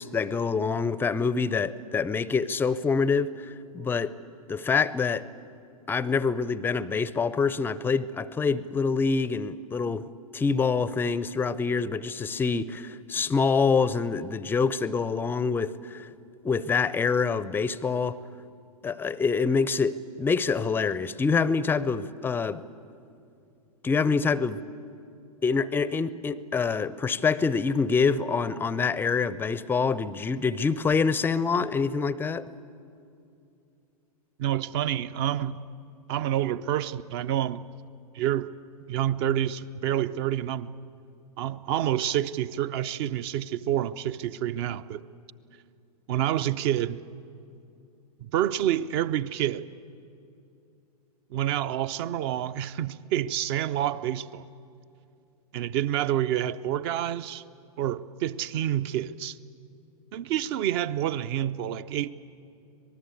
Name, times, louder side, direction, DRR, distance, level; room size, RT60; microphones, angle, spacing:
voice 1, 0.0-4.2 4.5-5.3 5.9-16.1 16.4-18.2 18.8-22.6 23.8-24.6 25.4-32.5, left 5 dB, 10° left, 0.6 m, -26 dB
voice 2, 34.4-35.6 36.1-37.6 38.1-38.5 38.9-40.7 41.4-45.0 46.1-47.0 48.2-49.7 51.3-54.4 55.5-57.4 57.8-59.4 60.1-62.1, right 11 dB, 40° right, 0.7 m, -28 dB
25.5 x 19.0 x 8.5 m
figure-of-eight pair, 105°, 20 cm